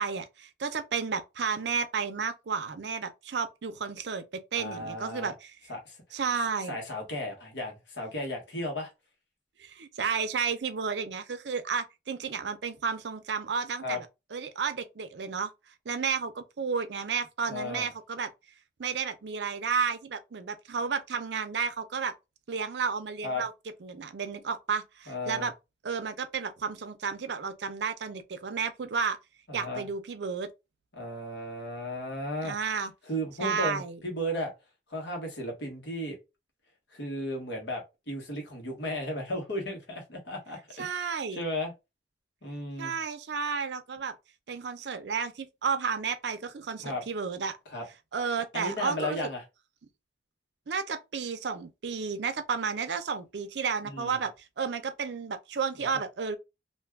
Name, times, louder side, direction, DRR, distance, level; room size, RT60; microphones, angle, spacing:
voice 1, 0.0-5.5 6.1-6.8 9.6-15.5 15.9-18.3 18.8-22.1 22.5-23.5 23.8-25.5 25.8-29.2 29.5-30.5 32.4-32.9 33.4-34.0 40.8-41.4 42.8-44.1 44.5-47.6 48.1-49.2 50.7-56.4, right 5 dB, 75° right, 0.5 m, -32 dB
voice 2, 4.5-5.3 5.7-6.2 6.7-8.9 13.8-14.0 17.5-17.9 23.2-23.4 25.1-25.5 29.5-29.9 30.9-32.5 33.1-34.5 34.9-36.2 36.9-41.7 42.4-43.0 46.8-47.0 47.7-47.8 48.5-49.4 53.8-54.1 55.8-55.9, left 1 dB, 80° left, 1.2 m, -35 dB
2.6 x 2.3 x 3.4 m
head